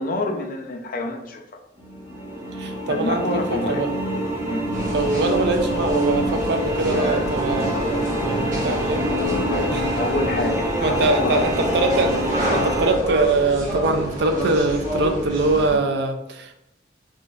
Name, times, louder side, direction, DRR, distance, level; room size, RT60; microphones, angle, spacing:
voice 1, 0.0-1.4 2.9-3.8 4.5-4.6 9.5-11.4, left 2 dB, 50° left, 3 dB, 0.5 m, -27 dB
sound 1, 1.8-12.9, equal, 15° right, 1.1 m, -25 dB
voice 2, 2.6-3.9 4.9-9.0 9.7-9.9 10.8-16.6, right 2 dB, 65° right, 6 dB, 0.4 m, -23 dB
sound 2, 4.7-15.8, right 1 dB, 45° right, 1.2 m, -29 dB
3.6 x 2.4 x 2.6 m, 0.83 s
head